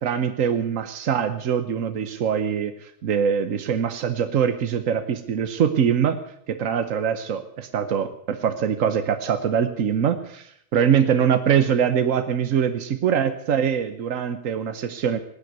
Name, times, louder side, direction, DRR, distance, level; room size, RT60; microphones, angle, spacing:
voice 1, 0.0-6.2 6.5-15.2, right 8 dB, 80° right, 9 dB, 1.3 m, -23 dB
19.0 x 9.3 x 8.1 m, 0.73 s
omnidirectional pair, 1.3 m